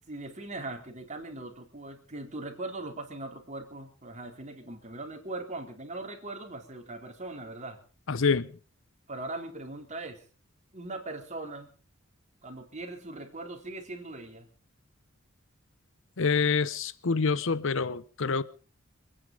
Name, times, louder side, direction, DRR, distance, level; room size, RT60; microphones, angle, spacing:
voice 1, 0.1-7.8 9.1-10.2 10.7-11.7 12.4-14.5, right 2 dB, 35° right, 3 dB, 3.7 m, -40 dB
voice 2, 8.1-8.5 16.2-18.4, left 5 dB, 70° left, 17 dB, 0.8 m, -26 dB
27.0 x 10.0 x 5.3 m, 0.38 s
head